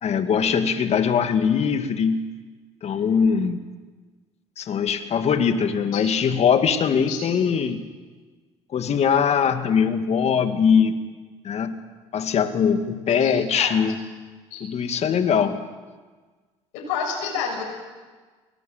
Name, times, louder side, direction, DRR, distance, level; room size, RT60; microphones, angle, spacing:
voice 1, 0.0-2.2 2.8-3.6 4.6-7.8 8.7-11.0 11.4-11.8 12.1-14.0 14.6-15.6, left 7 dB, 45° left, 8 dB, 2.1 m, -21 dB
voice 2, 13.1-13.7 14.5-14.6 16.9-17.6, left 6 dB, 70° left, 0 dB, 7.2 m, -29 dB
24.0 x 19.5 x 7.9 m, 1.4 s
hypercardioid pair, 65°, 15 cm